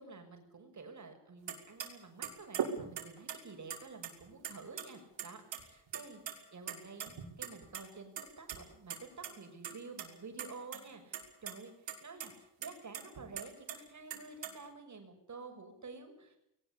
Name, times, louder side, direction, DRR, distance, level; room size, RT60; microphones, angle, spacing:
voice 1, 0.0-11.7 12.0-12.3 12.6-16.4, right 4 dB, 40° right, 6 dB, 6.6 m, -50 dB
sound 1, 1.5-1.6 1.8-1.9 2.2-3.4 3.7-4.5 4.8-4.9 5.2-5.6 5.9-6.3 6.7-7.8 8.2-8.6 8.9-9.0 9.2-9.3 9.6-10.1 10.4-10.8 11.1-11.5 11.9-12.0 12.2-12.3 12.6-13.8 14.1-14.5, right 8 dB, 70° right, 5.7 m, -39 dB
21.5 x 19.5 x 8.6 m, 0.78 s
cardioid pair, 125°, 45 cm